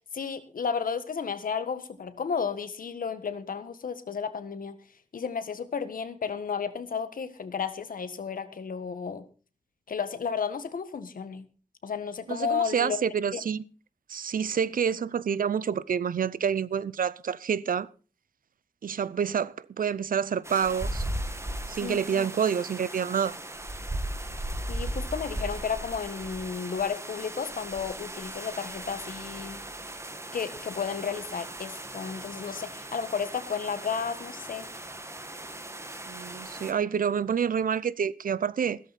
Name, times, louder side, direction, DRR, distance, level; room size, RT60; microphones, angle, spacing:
voice 1, 0.1-4.8 5.1-9.2 9.9-11.4 11.8-13.0 13.3-13.4 21.8-22.3 24.7-29.6 30.3-34.7, left 6 dB, 90° left, 1.6 m, -33 dB
voice 2, 12.3-13.6 14.1-17.9 18.8-21.0 21.7-23.4 36.1-38.8, right 7 dB, 85° right, 0.7 m, -28 dB
sound 1, 20.4-36.7, right 1 dB, 20° right, 1.8 m, -37 dB
16.0 x 13.5 x 4.3 m
wide cardioid pair, 110°, 14 cm